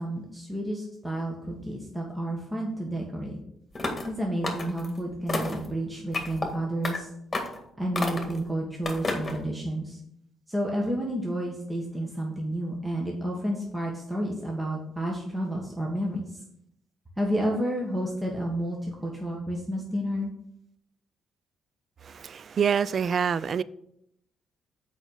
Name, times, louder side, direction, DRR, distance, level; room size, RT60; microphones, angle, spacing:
voice 1, 0.0-3.4 4.0-7.1 7.8-10.0 10.5-16.2 17.2-18.8 19.0-20.3, right 1 dB, 15° right, 1.6 m, -30 dB
sound 1, 3.7-4.1 4.4-4.9 5.3-5.7 6.1-6.5 6.8-7.0 7.3-7.6 7.9-8.4 8.8-9.4, left 3 dB, 25° left, 1.9 m, -30 dB
voice 2, 22.0-23.6, right 7 dB, 50° right, 0.3 m, -26 dB
6.3 x 5.3 x 6.5 m
cardioid pair, 90°, 0 cm